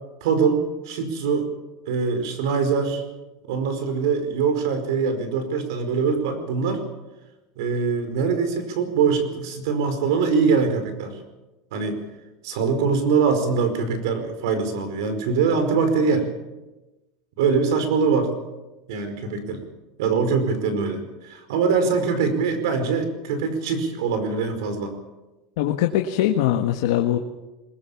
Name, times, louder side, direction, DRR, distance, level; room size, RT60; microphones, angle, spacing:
voice 1, 0.2-1.5 1.9-3.0 3.5-6.8 7.6-11.2 11.7-12.0 12.4-16.3 17.4-18.3 18.9-19.6 20.0-25.0, right 5 dB, 85° right, 9 dB, 4.9 m, -23 dB
voice 2, 25.6-27.2, left 12 dB, 80° left, 4 dB, 1.5 m, -21 dB
21.5 x 20.5 x 7.2 m, 1.1 s
supercardioid pair, 145°, 2 cm